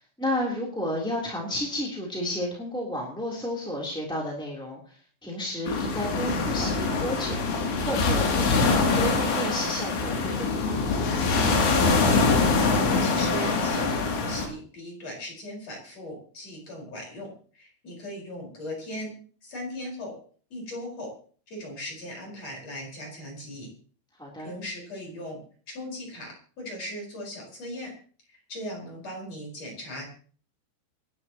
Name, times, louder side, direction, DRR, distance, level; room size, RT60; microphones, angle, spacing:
voice 1, 0.0-7.4 7.8-11.0 24.2-24.5, left 1 dB, ahead, -3 dB, 2.2 m, -32 dB
sound 1, 5.7-14.5, left 4 dB, 65° left, 4.8 m, -24 dB
voice 2, 13.0-19.2 19.4-20.2 20.5-21.1 21.5-23.7 24.4-25.4 25.7-27.9 28.3-30.1, left 1 dB, 35° left, 0 dB, 5.7 m, -38 dB
26.5 x 12.0 x 3.0 m, 0.43 s
omnidirectional pair, 5.6 m